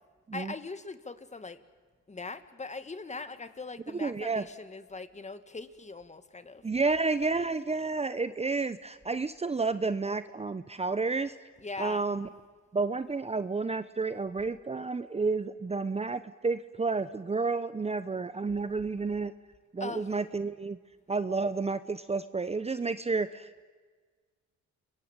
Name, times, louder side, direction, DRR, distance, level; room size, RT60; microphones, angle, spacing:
voice 1, 0.3-1.6 2.1-6.6 11.6-12.1 19.8-20.1, left 3 dB, 25° left, 10 dB, 2.0 m, -41 dB
voice 2, 4.0-4.4 6.6-11.4 11.8-12.3 12.7-19.3 19.7-20.8 21.1-23.6, right 4 dB, 20° right, 13 dB, 0.9 m, -30 dB
30.0 x 22.5 x 9.0 m, 1.5 s
cardioid pair, 90°, 30 cm